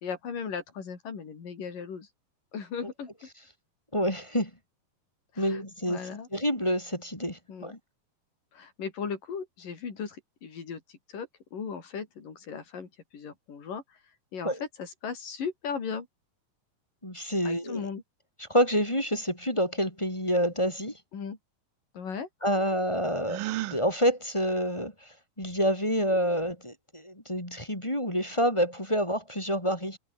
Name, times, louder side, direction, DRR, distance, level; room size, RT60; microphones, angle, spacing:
voice 1, 0.0-2.1 2.5-3.1 5.4-5.6 5.9-6.3 7.5-7.8 8.5-10.8 11.1-13.8 14.3-14.5 14.8-16.1 17.4-18.0 21.1-21.4 21.9-22.3, left 6 dB, 70° left, 5.6 m, -37 dB
voice 2, 3.9-4.5 5.4-6.0 6.3-7.8 14.4-14.6 17.0-17.9 18.4-20.9 22.4-23.4 23.7-25.1 25.4-30.0, equal, 10° left, 4.2 m, -28 dB
Gasp, 23.2-23.8, right 16 dB, 80° right, 2.5 m, -32 dB
omnidirectional pair, 4.0 m